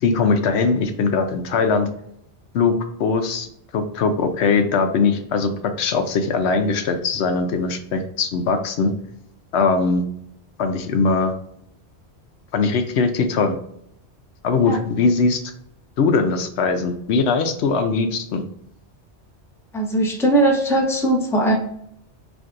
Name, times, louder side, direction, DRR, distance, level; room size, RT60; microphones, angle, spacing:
voice 1, 0.0-1.9 2.5-2.7 3.0-8.9 9.5-10.0 10.6-11.3 12.5-13.5 14.4-15.4 16.0-18.4, left 4 dB, 80° left, 6 dB, 0.8 m, -20 dB
voice 2, 19.7-21.5, right 1 dB, 5° left, -1 dB, 0.7 m, -19 dB
5.9 x 2.6 x 2.5 m, 0.72 s
omnidirectional pair, 1.1 m